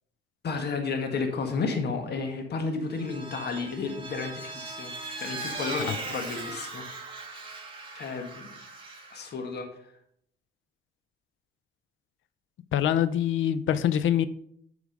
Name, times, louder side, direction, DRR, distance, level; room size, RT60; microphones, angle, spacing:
voice 1, 0.4-6.8 7.9-8.5 9.1-9.7, left 4 dB, 55° left, 4 dB, 1.7 m, -32 dB
Vehicle, 2.9-9.3, right 3 dB, 25° right, 2.0 m, -39 dB
voice 2, 12.7-14.3, left 10 dB, 75° left, 15 dB, 0.6 m, -24 dB
8.3 x 5.0 x 5.3 m, 0.68 s
cardioid pair, 90°, 20 cm